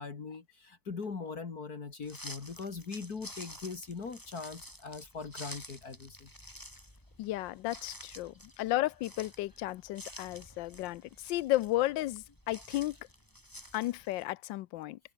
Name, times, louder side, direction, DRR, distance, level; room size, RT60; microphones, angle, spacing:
voice 1, 0.0-6.3, left 4 dB, 55° left, 2.7 m, -41 dB
sound 1, 2.0-14.2, equal, 10° left, 7.2 m, -50 dB
voice 2, 7.2-13.0 13.7-15.0, left 16 dB, 80° left, 1.3 m, -33 dB
omnidirectional pair, 2.0 m